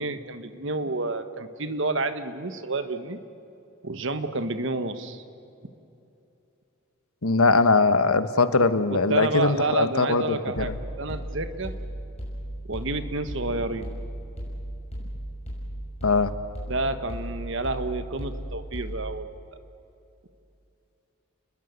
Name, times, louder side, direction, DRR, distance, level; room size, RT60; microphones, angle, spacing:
voice 1, 0.0-3.2 3.8-5.2 8.9-10.7 11.0-11.8 12.7-13.9 16.7-19.3, right 3 dB, 55° right, 10 dB, 1.3 m, -29 dB
voice 2, 7.2-10.8 16.0-16.3, left 3 dB, 80° left, 11 dB, 1.2 m, -21 dB
sound 1, 10.6-19.2, equal, 30° left, 6.2 m, -36 dB
29.0 x 21.0 x 8.1 m, 2.8 s
head